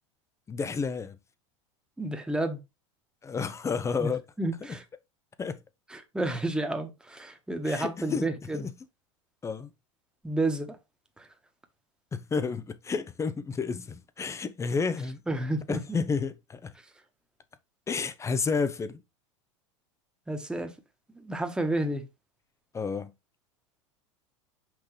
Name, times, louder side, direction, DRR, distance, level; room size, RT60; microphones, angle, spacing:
voice 1, 0.5-1.2 3.2-4.2 5.4-5.6 7.6-8.3 8.5-8.7 9.4-9.7 12.1-15.2 15.7-16.7 17.9-19.0 22.7-23.1, left 5 dB, 15° left, 0.7 m, -31 dB
voice 2, 2.0-2.6 4.0-4.1 4.4-4.8 5.9-8.7 10.2-10.8 11.2-11.3 15.3-16.0 20.3-20.7 21.1-22.0, right 1 dB, 5° right, 1.3 m, -30 dB
6.0 x 5.1 x 3.3 m
hypercardioid pair, 95°, 16 cm